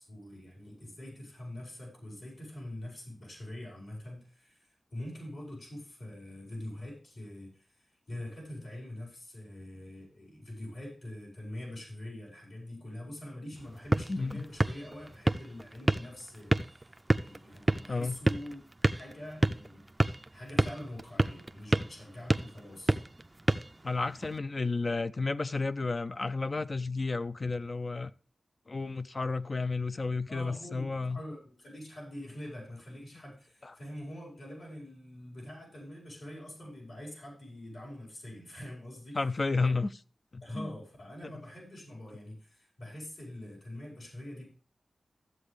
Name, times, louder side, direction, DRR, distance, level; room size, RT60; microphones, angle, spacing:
voice 1, 0.0-23.0 30.3-39.2 39.6-39.7 40.4-44.5, left 1 dB, 75° left, 4.9 m, -44 dB
sound 1, 13.6-24.4, right 1 dB, 20° right, 0.4 m, -31 dB
voice 2, 14.1-14.5 17.9-18.2 23.8-28.1 28.7-31.2 33.6-33.7 39.1-39.9 40.3-40.7 41.2-41.3, left 3 dB, 40° left, 0.4 m, -32 dB
14.0 x 7.9 x 3.3 m
wide cardioid pair, 110°, 0 cm